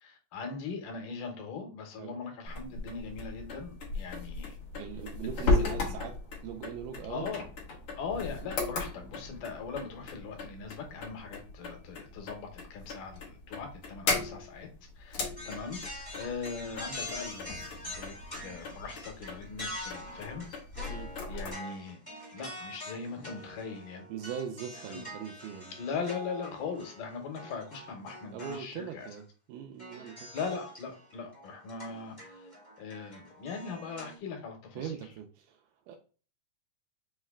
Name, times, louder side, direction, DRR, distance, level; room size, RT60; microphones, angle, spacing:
voice 1, 0.0-4.6 5.2-5.6 7.1-7.4 8.0-14.7 15.0-20.5 20.9-22.0 22.3-24.1 24.9-25.0 25.8-29.1 30.0-32.5 32.8-34.9, left 5 dB, 85° left, 3 dB, 2.5 m, -40 dB
sound 1, 2.4-21.5, left 3 dB, 60° left, 1.6 m, -36 dB
voice 2, 4.7-6.2 6.4-7.3 14.2-14.3 20.9-21.1 24.1-25.8 28.3-30.3 34.8-36.0, right 8 dB, 85° right, 3 dB, 2.1 m, -41 dB
sound 2, 15.4-28.6 29.0-29.1 29.8-34.2, left 1 dB, 10° left, 1.0 m, -45 dB
5.5 x 2.1 x 3.4 m, 0.38 s
omnidirectional pair, 3.7 m